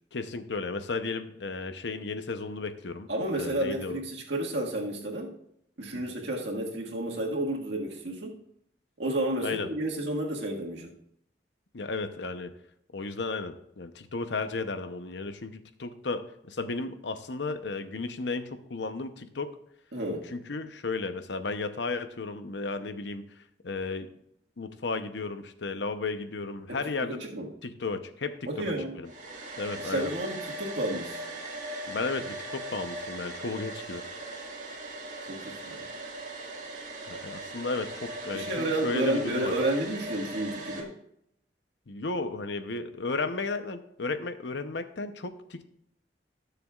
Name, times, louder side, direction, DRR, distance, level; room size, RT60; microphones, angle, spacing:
voice 1, 0.1-3.1 3.4-4.0 5.9-6.0 9.4-9.7 11.7-12.5 12.9-19.5 20.3-24.1 24.6-27.2 27.6-29.1 29.6-30.1 31.9-34.0 37.0-39.5 41.9-45.7, left 3 dB, 85° left, 9 dB, 0.8 m, -34 dB
voice 2, 3.1-5.3 5.8-8.4 9.0-10.9 19.9-20.2 26.7-27.5 28.5-29.0 29.8-31.2 35.2-35.8 38.3-40.9, right 1 dB, 85° right, -1 dB, 1.8 m, -31 dB
Domestic sounds home sounds, 29.0-40.8, right 1 dB, 45° right, 1.9 m, -39 dB
20.0 x 6.8 x 2.4 m, 0.74 s
head